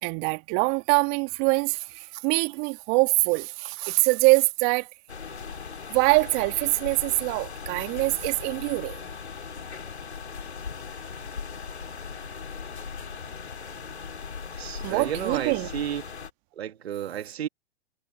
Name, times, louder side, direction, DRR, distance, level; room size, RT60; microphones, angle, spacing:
voice 1, 0.0-4.9 5.9-9.1 14.8-15.7, right 31 dB, 45° right, 2.0 m, -24 dB
sound 1, 5.1-16.3, left 5 dB, 90° left, 2.8 m, -38 dB
voice 2, 14.6-16.0 16.5-17.5, right 10 dB, 75° right, 2.0 m, -32 dB
hypercardioid pair, 110°, 32 cm